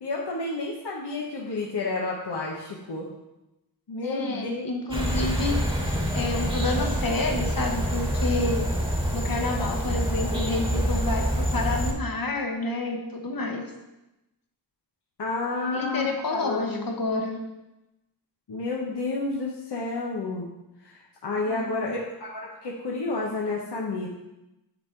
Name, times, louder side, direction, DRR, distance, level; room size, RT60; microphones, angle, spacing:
voice 1, 0.0-3.1 3.9-4.6 15.2-16.9 18.5-20.5 20.8-24.2, left 3 dB, 80° left, -2 dB, 1.0 m, -30 dB
voice 2, 4.0-5.6 6.1-8.6 9.1-13.6 15.5-17.4 21.5-21.9, left 2 dB, 60° left, 2 dB, 1.2 m, -29 dB
sound 1, 4.9-11.9, equal, 15° right, 1.3 m, -26 dB
9.3 x 3.7 x 4.5 m, 0.97 s
wide cardioid pair, 60°, 40 cm